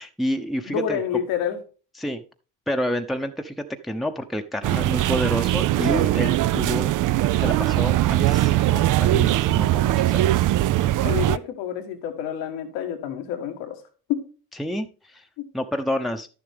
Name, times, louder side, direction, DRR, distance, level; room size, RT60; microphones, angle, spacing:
voice 1, 0.0-1.0 2.0-2.2 2.7-6.9 7.3-10.4 14.6-15.2 15.5-16.3, equal, ahead, 5 dB, 0.9 m, -29 dB
voice 2, 0.7-1.6 11.0-13.8 14.1-14.2, left 9 dB, 80° left, 6 dB, 1.5 m, -28 dB
sound 1, 4.6-11.4, right 14 dB, 50° right, 0.4 m, -21 dB
11.0 x 7.0 x 3.5 m, 0.36 s
hypercardioid pair, 55°, 43 cm